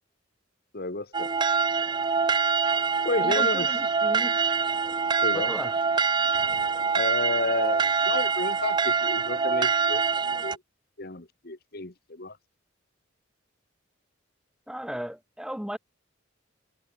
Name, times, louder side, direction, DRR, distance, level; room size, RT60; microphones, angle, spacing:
voice 1, 0.7-1.3 3.0-3.7 5.2-5.5 6.9-10.0 10.4-10.6 11.0-12.4, left 2 dB, 50° left, 1.8 m, -31 dB
sound 1, 1.1-10.6, right 5 dB, 20° right, 0.4 m, -25 dB
voice 2, 3.2-4.4 5.3-5.8 14.7-15.8, equal, 5° right, 0.8 m, -35 dB
head